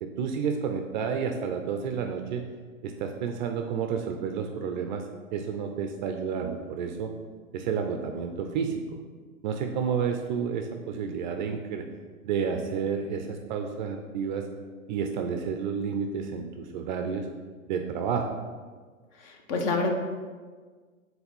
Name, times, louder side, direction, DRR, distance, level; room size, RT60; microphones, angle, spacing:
voice 1, 0.0-2.4 2.8-5.0 5.3-7.1 7.5-9.0 9.4-11.9 12.2-14.4 14.9-17.3 17.7-18.3, right 6 dB, 35° right, 5 dB, 0.4 m, -30 dB
voice 2, 19.2-19.9, left 3 dB, 40° left, 3 dB, 1.0 m, -27 dB
4.6 x 3.9 x 5.3 m, 1.5 s
hypercardioid pair, 115°, 42 cm